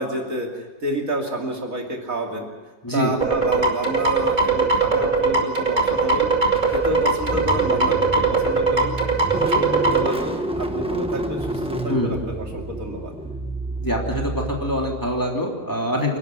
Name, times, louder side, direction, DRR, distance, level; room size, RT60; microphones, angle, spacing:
voice 1, 0.0-2.5 2.9-6.3 6.7-9.0 9.4-13.1, right 1 dB, 55° right, 1 dB, 3.2 m, -29 dB
sound 1, 3.2-10.1, right 4 dB, 30° right, 2.7 m, -20 dB
Car / Engine starting, 6.5-15.3, right 1 dB, 5° right, 1.1 m, -30 dB
voice 2, 13.8-16.2, equal, 10° left, -1 dB, 3.1 m, -24 dB
28.0 x 12.0 x 9.6 m, 1.2 s
omnidirectional pair, 1.7 m